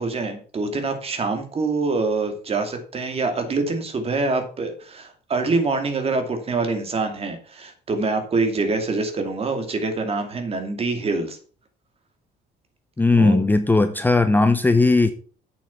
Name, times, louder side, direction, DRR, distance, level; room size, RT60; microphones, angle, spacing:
voice 1, 0.0-11.4 13.1-13.4, right 3 dB, 35° right, 6 dB, 2.5 m, -25 dB
voice 2, 13.0-15.1, left 3 dB, 10° left, 10 dB, 0.7 m, -17 dB
8.4 x 7.2 x 5.9 m, 0.42 s
cardioid pair, 110°, 17 cm